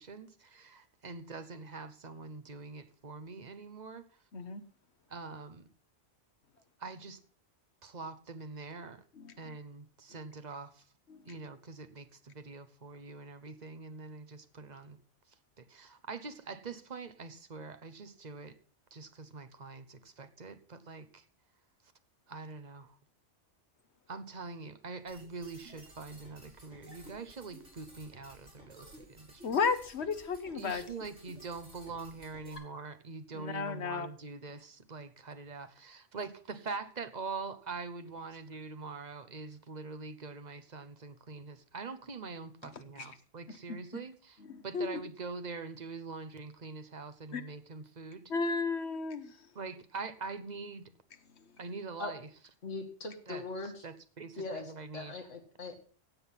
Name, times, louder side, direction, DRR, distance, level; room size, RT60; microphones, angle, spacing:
voice 1, 0.0-4.0 5.1-5.6 6.8-7.2 7.8-9.0 9.4-10.8 11.3-15.0 15.6-18.6 18.9-21.2 22.3-23.0 24.1-29.5 30.5-48.3 49.5-50.9 51.6-52.3 53.3-55.2, right 4 dB, 40° right, 10 dB, 1.1 m, -44 dB
voice 2, 4.3-4.6 9.2-9.3 11.1-11.2 29.4-30.8 33.3-34.1 44.5-44.9 47.3-47.4 48.3-49.3, left 5 dB, 65° left, 10 dB, 1.4 m, -33 dB
sound 1, 25.1-32.6, right 1 dB, 75° right, 6.2 m, -55 dB
voice 3, 52.6-53.8 54.4-55.7, left 3 dB, 85° left, 2 dB, 2.2 m, -41 dB
16.0 x 7.8 x 5.7 m, 0.43 s
omnidirectional pair, 1.2 m